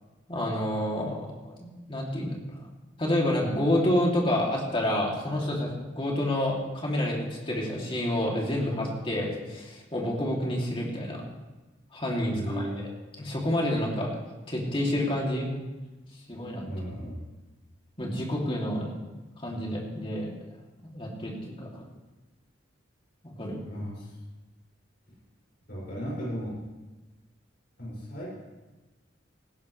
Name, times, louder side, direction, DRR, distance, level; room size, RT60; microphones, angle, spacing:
voice 1, 0.3-2.4 3.0-11.2 11.9-12.9 13.2-14.1 14.5-15.5 16.3-16.7 18.0-18.9 19.4-20.3 20.9-21.9 23.2-23.6, left 1 dB, 25° left, -2 dB, 2.6 m, -29 dB
voice 2, 12.3-12.8 16.6-17.2 23.6-24.2 25.7-26.5 27.8-28.3, equal, 50° left, -6 dB, 6.0 m, -35 dB
18.5 x 15.5 x 3.2 m, 1.2 s
head